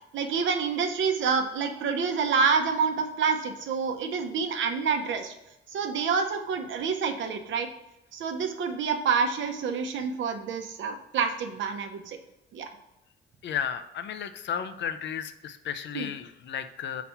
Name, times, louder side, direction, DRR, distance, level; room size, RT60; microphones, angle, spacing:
voice 1, 0.1-5.3 5.7-7.7 8.1-12.2 12.5-12.7 15.9-16.1, right 5 dB, 70° right, 5 dB, 0.8 m, -27 dB
voice 2, 13.4-17.0, left 8 dB, 65° left, 10 dB, 0.6 m, -33 dB
4.2 x 4.1 x 5.6 m, 0.91 s
cardioid pair, 90°, 20 cm